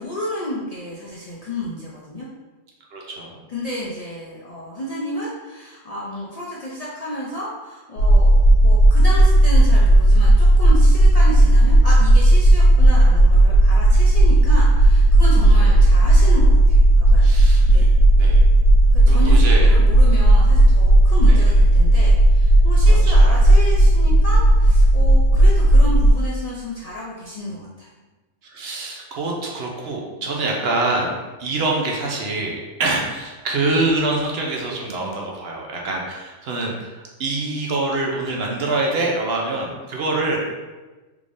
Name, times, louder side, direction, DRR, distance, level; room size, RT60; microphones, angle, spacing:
voice 1, 0.0-2.3 3.5-17.9 18.9-27.9, equal, 55° left, -6 dB, 0.4 m, -31 dB
voice 2, 2.9-3.4 15.5-15.7 17.2-17.9 18.1-18.4 19.1-19.7 21.3-21.5 22.8-23.3 28.4-40.4, right 2 dB, 60° right, -1 dB, 0.8 m, -25 dB
sound 1, 8.0-26.1, right 1 dB, 70° left, 1.0 m, -13 dB
3.5 x 3.2 x 2.6 m, 1.2 s
omnidirectional pair, 1.3 m